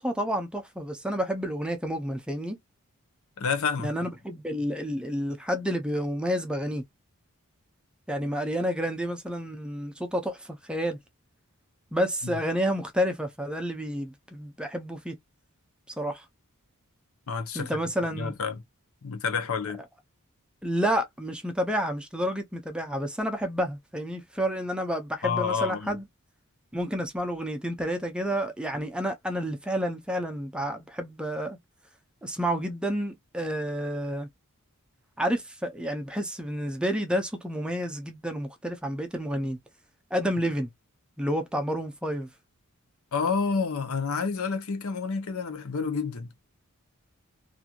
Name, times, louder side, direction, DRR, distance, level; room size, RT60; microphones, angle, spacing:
voice 1, 0.0-2.6 3.8-6.8 8.1-11.0 11.9-15.2 16.0-16.2 17.5-18.3 20.6-26.0 26.7-31.6 32.2-34.3 35.2-39.6 40.1-40.7 41.2-42.3, equal, 5° right, 0.5 m, -30 dB
voice 2, 3.4-3.9 12.2-12.4 17.3-17.8 18.1-18.6 19.0-19.8 25.2-26.0 43.1-46.3, left 5 dB, 70° left, 0.7 m, -29 dB
3.0 x 2.5 x 2.3 m
head